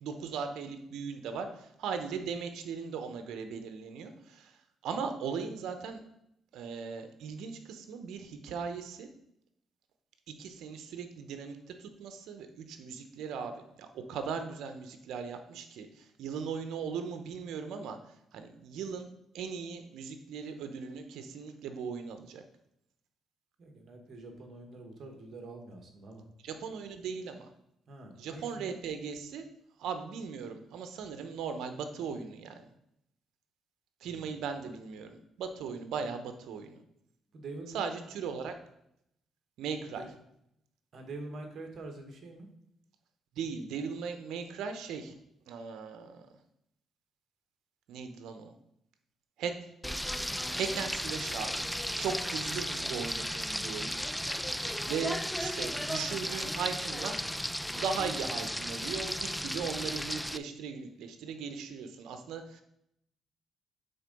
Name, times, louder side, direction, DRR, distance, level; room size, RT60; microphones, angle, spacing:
voice 1, 0.0-4.5 4.8-6.0 6.5-9.1 10.3-13.5 13.8-18.0 18.3-19.1 19.3-22.4 26.4-27.5 28.2-29.4 29.8-32.7 34.0-36.8 37.7-38.5 39.6-40.1 43.4-45.1 45.5-46.3 47.9-48.5 49.4-49.6 50.5-51.7 52.0-54.0 54.9-57.2 57.8-62.6, right 6 dB, 80° right, 7 dB, 0.8 m, -38 dB
voice 2, 23.6-26.2 27.9-28.7 34.0-34.4 37.3-37.8 39.9-40.1 40.9-42.5, right 2 dB, 55° right, 4 dB, 1.6 m, -45 dB
Frying (food), 49.8-60.4, equal, ahead, 0.3 m, -35 dB
8.0 x 3.7 x 5.3 m, 0.77 s
cardioid pair, 90°, 0 cm